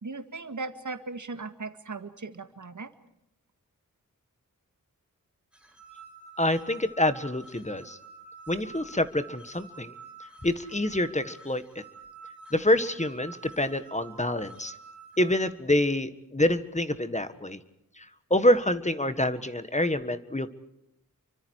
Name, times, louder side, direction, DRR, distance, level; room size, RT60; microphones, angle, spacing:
voice 1, 0.0-2.9, right 3 dB, 60° right, 9 dB, 1.9 m, -38 dB
sound 1, 5.5-15.3, right 4 dB, 5° right, 5.8 m, -49 dB
voice 2, 6.4-8.0 8.5-9.9 10.4-11.6 12.5-14.7 15.2-17.6 18.0-18.1 18.3-20.5, left 1 dB, 20° left, 11 dB, 1.6 m, -26 dB
30.0 x 24.5 x 4.7 m, 0.82 s
wide cardioid pair, 55°, 34 cm